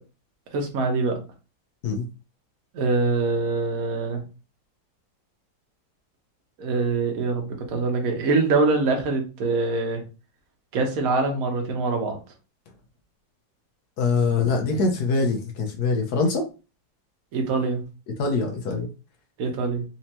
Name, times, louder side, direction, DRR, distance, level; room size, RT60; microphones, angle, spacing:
voice 1, 0.5-1.2 2.7-4.2 6.6-10.0 10.7-12.2 17.3-17.8 19.4-19.8, right 3 dB, 55° right, 3 dB, 1.2 m, -24 dB
voice 2, 14.0-16.5 18.2-18.9, left 4 dB, 65° left, 3 dB, 1.1 m, -23 dB
4.3 x 2.8 x 2.9 m, 0.32 s
omnidirectional pair, 2.0 m